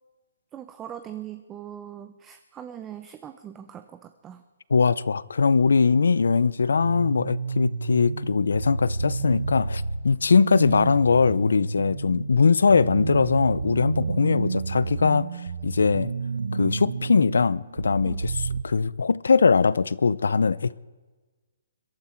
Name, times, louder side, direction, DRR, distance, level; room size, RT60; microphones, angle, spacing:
voice 1, 0.5-4.4 10.1-10.2 14.0-14.2 18.0-18.2, right 10 dB, 15° right, 0.6 m, -41 dB
voice 2, 4.7-15.3 15.6-16.1 16.5-20.8, left 5 dB, 85° left, 0.6 m, -21 dB
sound 1, 6.8-18.6, right 4 dB, 85° right, 0.9 m, -31 dB
22.0 x 13.0 x 4.5 m
hypercardioid pair, 155°, 0 cm